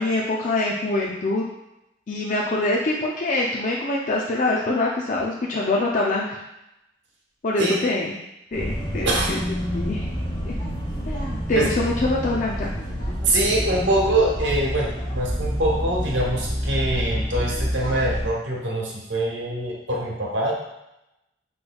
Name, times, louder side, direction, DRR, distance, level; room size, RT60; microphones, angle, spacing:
voice 1, 0.0-1.4 2.1-6.4 7.4-8.2 8.5-9.4 9.7-10.0 10.4-10.5 11.1-12.7, left 2 dB, 45° left, -3 dB, 0.4 m, -24 dB
sound 1, 8.5-18.3, equal, 25° left, 1.2 m, -28 dB
voice 2, 13.2-20.5, right 1 dB, 85° right, -2 dB, 1.0 m, -23 dB
6.1 x 3.1 x 2.3 m, 0.89 s
head